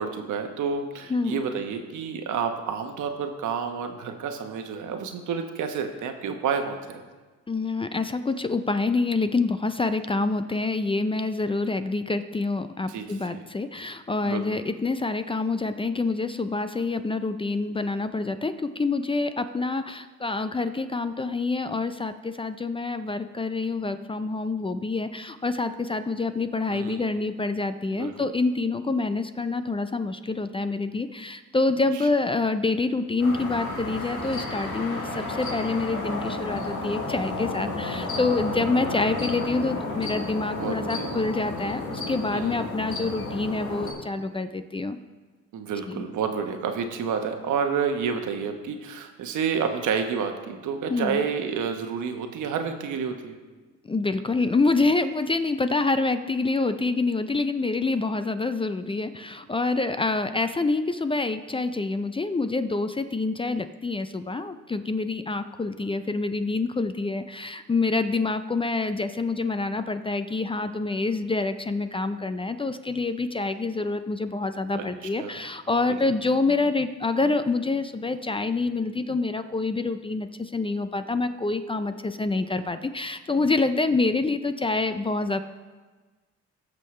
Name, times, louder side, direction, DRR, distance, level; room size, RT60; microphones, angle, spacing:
voice 1, 0.0-7.0 12.9-13.4 14.2-14.4 26.7-27.1 27.9-28.1 31.9-32.1 40.5-41.1 42.3-42.7 45.5-53.4 74.7-74.9 75.2-75.4, right 6 dB, 75° right, 5 dB, 1.1 m, -29 dB
voice 2, 1.1-1.4 7.5-45.0 45.9-46.1 50.9-51.2 53.8-85.4, left 3 dB, 20° left, 10 dB, 0.4 m, -27 dB
sound 1, 33.2-43.9, left 2 dB, 75° left, 2.5 m, -32 dB
18.0 x 6.5 x 3.2 m, 1.3 s
cardioid pair, 90°, 30 cm